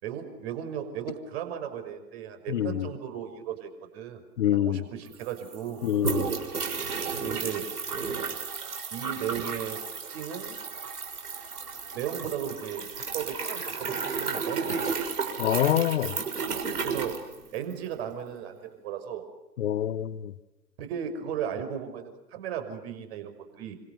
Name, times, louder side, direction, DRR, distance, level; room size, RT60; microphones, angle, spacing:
voice 1, 0.0-4.2 4.5-5.9 7.2-7.7 8.9-9.8 10.1-10.6 11.9-15.1 16.8-17.2 17.5-19.3 20.8-23.8, right 9 dB, 40° right, 5.8 m, -36 dB
voice 2, 2.5-2.9 4.4-4.8 5.8-6.3 15.4-16.2 19.6-20.3, left 11 dB, 45° left, 1.7 m, -26 dB
sound 1, 4.8-4.9 5.1-17.9, right 5 dB, 65° right, 6.6 m, -33 dB
28.0 x 26.0 x 6.9 m
figure-of-eight pair, 115°, 49 cm